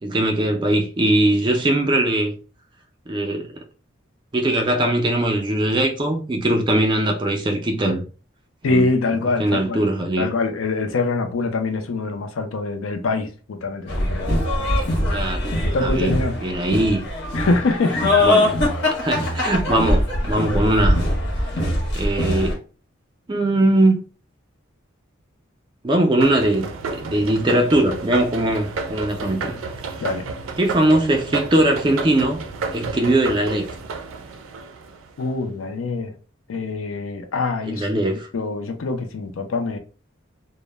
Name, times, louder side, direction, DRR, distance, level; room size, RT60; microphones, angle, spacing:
voice 1, 0.0-2.3 3.1-3.5 4.3-8.0 8.6-8.9 9.4-10.3 15.1-15.5 15.8-16.1 16.4-17.0 18.2-18.5 19.0-21.0 21.9-22.6 23.3-24.0 25.8-29.6 30.6-32.4 32.7-33.7 37.7-38.3, right 1 dB, 25° right, 0.4 m, -20 dB
voice 2, 8.6-9.8 10.2-14.9 15.7-16.4 17.3-18.1 30.0-30.3 35.2-36.1 36.5-38.0 38.3-39.8, left 3 dB, 80° left, 0.4 m, -24 dB
sound 1, 13.9-22.5, left 1 dB, 55° left, 0.8 m, -22 dB
sound 2, 26.2-35.3, right 4 dB, 90° right, 0.4 m, -31 dB
2.0 x 2.0 x 3.1 m
head